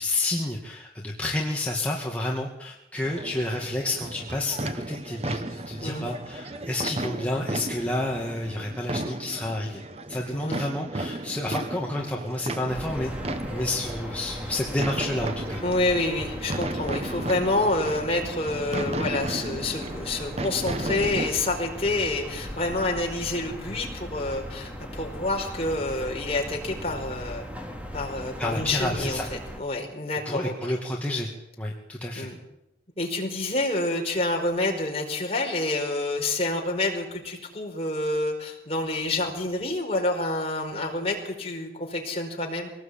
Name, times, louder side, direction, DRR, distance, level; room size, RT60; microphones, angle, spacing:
voice 1, 0.0-4.6 4.9-9.8 10.1-13.1 13.5-15.6 28.4-29.3 30.3-31.3 31.6-32.3, left 1 dB, 10° left, -2 dB, 2.2 m, -30 dB
sound 1, 3.0-21.3, right 1 dB, 35° right, 1.2 m, -34 dB
voice 2, 5.8-6.1 10.3-10.7 15.6-27.5 27.9-30.7 31.1-31.2 32.1-32.4 33.0-42.7, left 2 dB, 35° left, 1 dB, 4.8 m, -28 dB
sound 2, 12.7-29.6, equal, 5° right, 2.8 m, -38 dB
24.0 x 19.0 x 8.8 m, 0.88 s
head